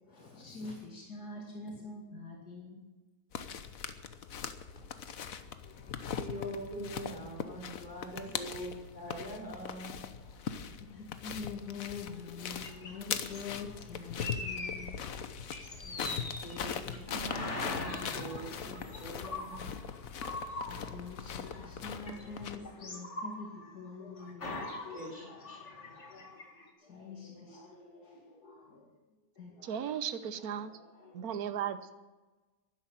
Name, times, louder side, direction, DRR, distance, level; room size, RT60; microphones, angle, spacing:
voice 1, 0.0-2.8 5.7-6.3 7.4-8.0 10.2-15.5 18.2-19.6 20.3-26.4 26.8-28.9 29.4-31.3, left 4 dB, 85° left, -1 dB, 3.0 m, -47 dB
sound 1, 3.3-22.6, left 7 dB, 65° left, 1.3 m, -41 dB
voice 2, 6.1-10.0 15.8-19.6 24.9-25.6, right 1 dB, 30° left, -1 dB, 4.1 m, -43 dB
sound 2, 12.6-13.5 14.2-15.2 15.5-17.0 17.2-21.8 22.1-23.9 24.1-26.7, left 2 dB, 50° left, 2.3 m, -42 dB
voice 3, 29.6-30.7 31.1-31.9, right 9 dB, 75° right, 12 dB, 1.4 m, -36 dB
12.0 x 11.0 x 8.9 m, 1.2 s
omnidirectional pair, 1.6 m